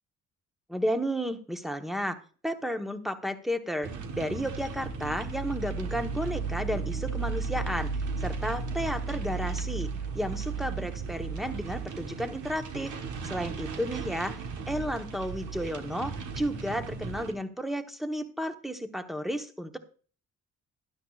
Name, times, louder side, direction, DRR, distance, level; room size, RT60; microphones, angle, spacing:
voice 1, 0.7-2.2 2.4-7.9 8.2-9.9 10.1-13.0 13.2-14.3 14.7-19.8, equal, ahead, 6 dB, 1.1 m, -32 dB
Wind And Rain On Window Short, 3.8-17.3, right 4 dB, 75° right, 1.4 m, -35 dB
12.5 x 11.0 x 2.4 m, 0.40 s
cardioid pair, 90°, 30 cm